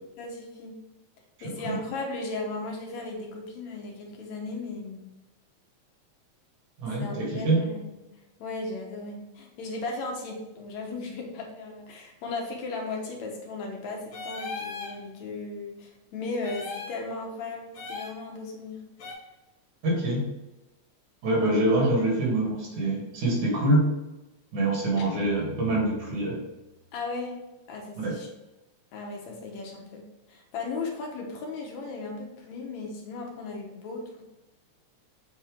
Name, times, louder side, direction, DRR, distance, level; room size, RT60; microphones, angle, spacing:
voice 1, 0.2-0.8 1.4-5.1 7.0-8.0 8.4-18.9 26.9-27.4 27.7-28.3 28.9-34.2, left 3 dB, 70° left, 1 dB, 2.2 m, -36 dB
voice 2, 1.4-1.8 6.8-7.6 19.8-20.2 21.2-23.8 24.5-26.4 28.0-28.1, right 2 dB, 75° right, -3 dB, 3.5 m, -25 dB
sound 1, 14.1-14.9 16.4-17.0 17.7-18.2 19.0-19.1, left 4 dB, 55° left, 1.7 m, -37 dB
Guitar, 25.0-27.0, left 5 dB, 85° left, 2.2 m, -44 dB
7.2 x 4.4 x 3.5 m, 0.99 s
omnidirectional pair, 3.4 m